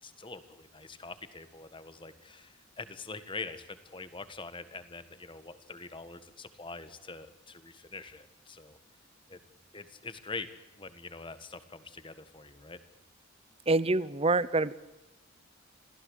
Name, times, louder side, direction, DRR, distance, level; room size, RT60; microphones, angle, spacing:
voice 1, 0.0-8.8 9.3-9.4 9.7-10.5 10.8-12.8, left 3 dB, 25° left, 12 dB, 1.6 m, -44 dB
voice 2, 13.7-14.7, right 2 dB, 30° right, 18 dB, 0.8 m, -26 dB
27.0 x 16.5 x 8.3 m, 1.0 s
head